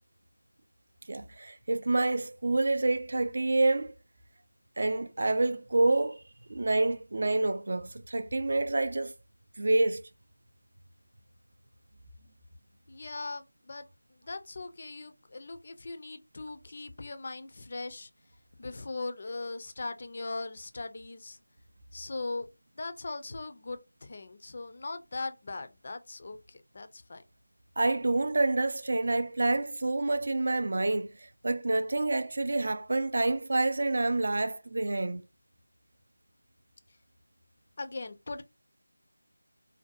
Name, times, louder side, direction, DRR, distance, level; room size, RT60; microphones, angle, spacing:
voice 1, 1.1-3.9 4.8-6.2 6.5-9.1 9.6-10.0 27.8-31.1 31.4-35.2, right 2 dB, 50° right, 0.3 m, -27 dB
voice 2, 12.9-18.1 18.6-21.4 21.9-22.5 22.8-27.2 37.8-38.4, left 3 dB, 40° left, 0.3 m, -39 dB
2.5 x 2.2 x 2.4 m
figure-of-eight pair, 170°, 0 cm